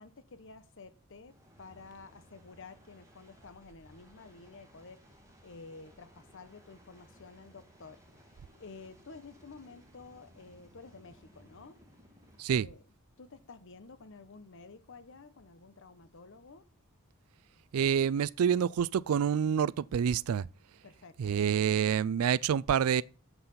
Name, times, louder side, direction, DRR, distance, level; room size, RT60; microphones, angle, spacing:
voice 1, 0.0-5.0 5.4-11.8 12.5-12.8 13.2-16.6 20.8-21.4, left 4 dB, 60° left, 0.9 m, -51 dB
sound 1, 1.3-12.4, equal, 15° right, 2.4 m, -60 dB
voice 2, 17.7-20.5 21.2-23.0, right 8 dB, 80° right, 0.4 m, -27 dB
8.1 x 5.7 x 6.8 m
head